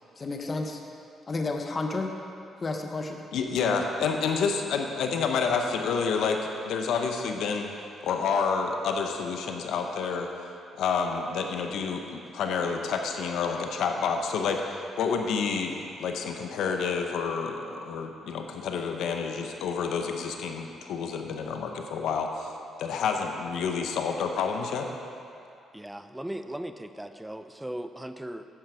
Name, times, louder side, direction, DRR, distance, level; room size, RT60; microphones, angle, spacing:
voice 1, 0.2-0.8 1.3-2.1 2.6-3.2, left 3 dB, 35° left, 3 dB, 1.1 m, -31 dB
voice 2, 3.3-6.4 6.6-7.7 8.0-10.3 10.8-14.6 15.0-22.5 22.8-24.9, left 5 dB, 80° left, 4 dB, 0.8 m, -29 dB
voice 3, 25.7-28.5, right 1 dB, 5° right, 9 dB, 0.5 m, -38 dB
11.0 x 7.6 x 4.8 m, 2.6 s
cardioid pair, 90°, 0 cm